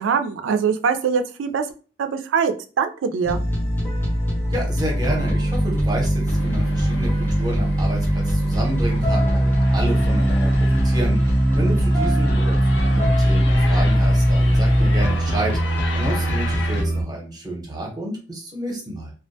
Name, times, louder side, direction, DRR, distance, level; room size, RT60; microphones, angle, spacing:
voice 1, 0.0-1.7 2.0-3.4, right 6 dB, 75° right, 8 dB, 0.3 m, -22 dB
sound 1, 3.2-17.0, equal, 10° left, 0.6 m, -20 dB
voice 2, 4.5-7.1 7.4-15.6 15.9-19.1, right 1 dB, 20° right, -1 dB, 0.7 m, -30 dB
sound 2, 6.3-16.8, left 3 dB, 60° left, 0.5 m, -35 dB
2.3 x 2.1 x 2.6 m, 0.37 s
head